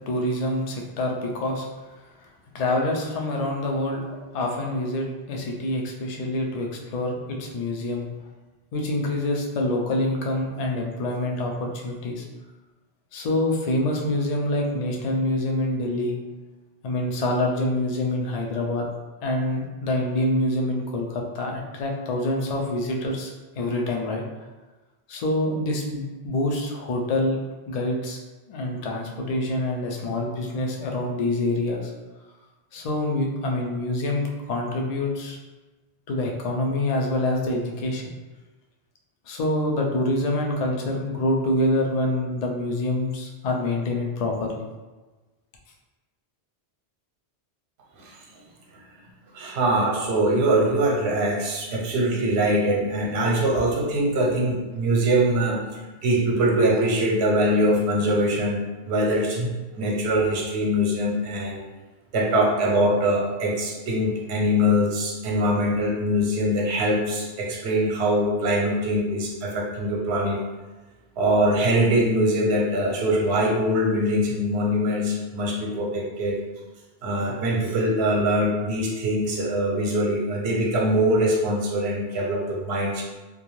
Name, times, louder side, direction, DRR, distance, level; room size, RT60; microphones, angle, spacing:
voice 1, 0.1-1.7 2.2-2.3 2.5-8.1 8.7-12.2 13.1-16.2 16.8-18.9 19.2-24.2 25.1-27.4 27.7-28.2 28.5-31.9 32.7-35.4 36.1-38.1 39.3-44.6, left 1 dB, 60° left, 0 dB, 0.4 m, -26 dB
voice 2, 49.3-55.6 56.0-61.6 62.1-70.4 71.2-76.4 77.0-83.0, right 1 dB, 75° right, -2 dB, 0.9 m, -23 dB
2.4 x 2.2 x 3.0 m, 1.2 s
omnidirectional pair, 1.1 m